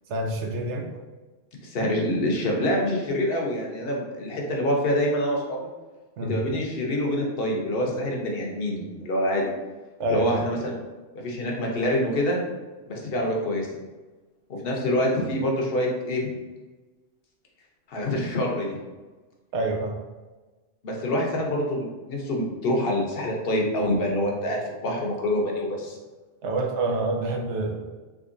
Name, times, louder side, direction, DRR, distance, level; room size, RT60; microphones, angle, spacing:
voice 1, 0.1-0.9 6.2-6.4 10.0-10.4 19.5-20.0 26.4-27.8, right 2 dB, 85° right, 2 dB, 0.9 m, -27 dB
voice 2, 1.6-5.7 6.3-9.5 10.1-10.8 11.2-12.4 12.9-13.7 14.5-16.3 17.9-18.7 20.8-26.0, left 1 dB, 60° left, 0 dB, 0.9 m, -26 dB
3.7 x 3.1 x 2.5 m, 1.2 s
omnidirectional pair, 1.2 m